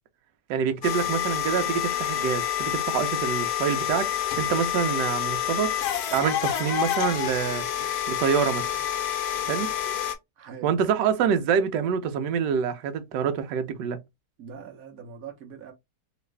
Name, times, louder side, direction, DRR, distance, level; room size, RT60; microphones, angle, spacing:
voice 1, 0.5-5.7 6.1-7.6 8.1-8.6 9.5-9.7 10.6-14.0, right 7 dB, 80° right, 1.2 m, -26 dB
sound 1, 0.8-10.1, left 10 dB, 70° left, 1.1 m, -28 dB
voice 2, 10.4-10.8 14.4-15.7, right 6 dB, 60° right, 1.1 m, -42 dB
3.1 x 2.4 x 3.2 m
omnidirectional pair, 1.9 m